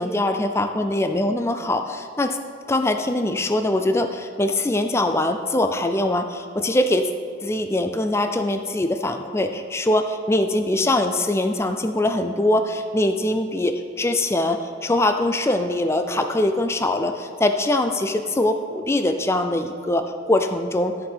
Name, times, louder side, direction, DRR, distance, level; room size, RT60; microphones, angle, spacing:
voice 1, 0.0-2.4 2.7-7.1 7.4-20.9, left 1 dB, 15° left, 6 dB, 0.4 m, -22 dB
13.0 x 4.7 x 5.5 m, 2.4 s
head